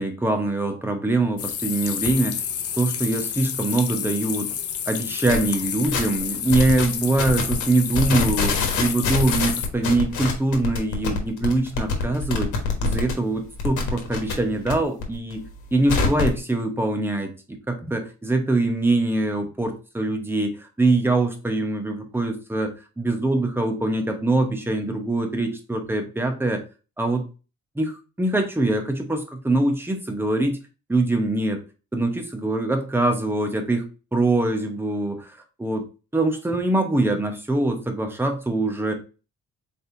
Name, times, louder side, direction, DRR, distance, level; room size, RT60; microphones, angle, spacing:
voice 1, 0.0-2.4 2.8-4.5 4.9-12.5 12.8-15.4 15.7-26.6 27.0-27.2 27.8-30.6 30.9-31.6 31.9-33.8 34.1-35.3 35.6-35.8 36.1-39.0, right 2 dB, 5° right, 5 dB, 0.9 m, -23 dB
sound 1, 1.4-9.7, left 8 dB, 50° left, 0.6 m, -30 dB
sound 2, 5.3-5.4 5.8-6.2 6.5-6.9 7.2-7.6 7.9-13.1 13.4-14.7 15.0-16.4, left 4 dB, 75° left, 1.3 m, -25 dB
4.3 x 3.3 x 2.6 m, 0.32 s
cardioid pair, 90°, 30 cm